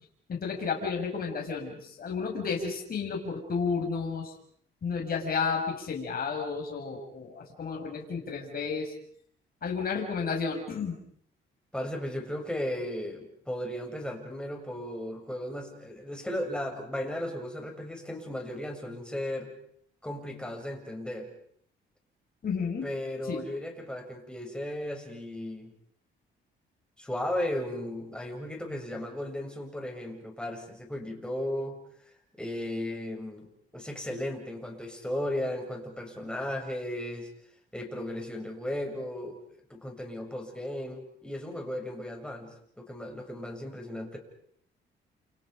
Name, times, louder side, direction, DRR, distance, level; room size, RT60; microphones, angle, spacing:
voice 1, 0.3-4.3 4.8-8.9 9.6-10.9 22.4-22.9 23.3-23.4, left 5 dB, 50° left, 0 dB, 6.4 m, -32 dB
voice 2, 11.7-19.5 20.0-21.3 22.8-25.7 27.0-31.8 32.4-33.5 33.7-37.3 37.7-39.4 39.7-44.2, left 1 dB, 5° left, 1 dB, 7.5 m, -35 dB
30.0 x 29.5 x 5.3 m, 0.65 s
cardioid pair, 90°, 20 cm